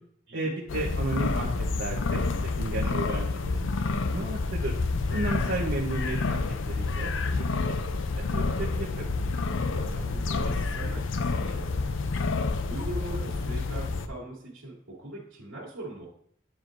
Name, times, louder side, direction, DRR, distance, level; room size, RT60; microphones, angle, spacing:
voice 1, 0.3-4.7 5.1-7.7 8.1-9.2, right 2 dB, 65° right, -5 dB, 1.0 m, -34 dB
sound 1, 0.7-14.1, left 3 dB, 75° left, 0.5 m, -29 dB
voice 2, 9.7-11.8 12.6-16.1, right 1 dB, 85° right, -7 dB, 2.1 m, -41 dB
9.9 x 4.6 x 2.6 m, 0.62 s
head